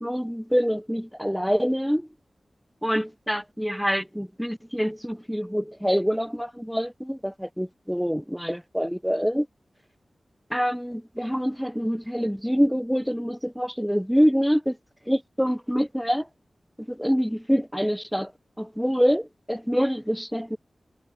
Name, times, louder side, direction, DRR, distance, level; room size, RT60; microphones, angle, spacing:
voice 1, 0.0-2.1 2.8-9.5 10.5-14.8 15.1-16.3 16.8-18.3 18.6-20.6, equal, ahead, 0.3 m, -25 dB
wide cardioid pair, 60°, 0 cm